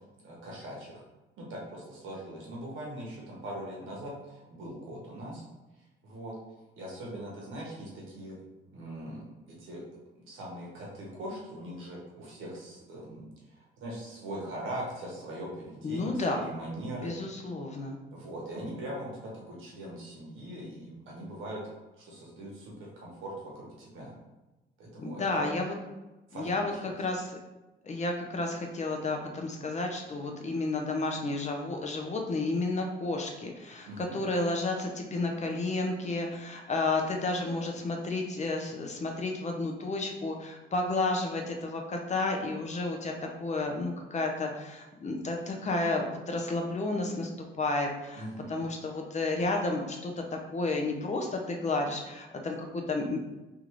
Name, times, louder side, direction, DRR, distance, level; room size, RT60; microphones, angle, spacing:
voice 1, 0.2-1.0 1.4-5.4 6.0-6.4 6.8-8.4 8.7-9.9 10.1-17.1 18.1-21.7 22.0-24.1 24.8-25.4 26.3-26.7 33.8-34.2 48.1-48.6, right 1 dB, 85° right, -3 dB, 1.2 m, -41 dB
voice 2, 15.8-16.5 17.0-18.0 25.0-25.7 26.3-27.4 27.8-43.1 43.4-53.2, left 2 dB, 35° left, 2 dB, 0.6 m, -31 dB
3.5 x 2.5 x 3.0 m, 1.0 s
cardioid pair, 90°, 20 cm